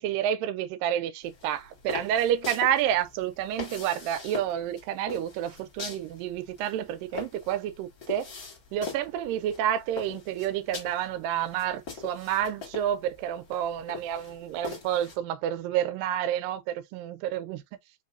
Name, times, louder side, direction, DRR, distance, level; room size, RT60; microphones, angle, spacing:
voice 1, 0.0-8.3 8.7-17.6, right 10 dB, 80° right, 2.2 m, -29 dB
sound 1, 1.2-15.2, left 5 dB, 35° left, 1.5 m, -42 dB
5.3 x 3.2 x 2.5 m
omnidirectional pair, 4.2 m